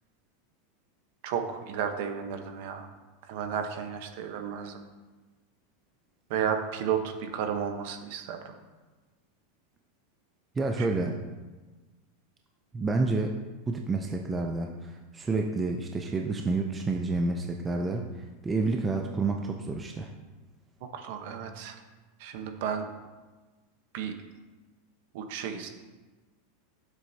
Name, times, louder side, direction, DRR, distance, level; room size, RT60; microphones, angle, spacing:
voice 1, 1.2-2.9 3.2-4.8 6.3-8.6 10.8-10.9 20.9-21.8 22.2-22.9 23.9-24.1 25.1-25.7, right 7 dB, 50° right, 6 dB, 1.0 m, -33 dB
voice 2, 10.6-11.2 12.7-13.4 13.7-20.1, right 3 dB, 10° right, 2 dB, 0.4 m, -29 dB
12.0 x 7.5 x 2.8 m, 1.3 s
supercardioid pair, 175°, 0 cm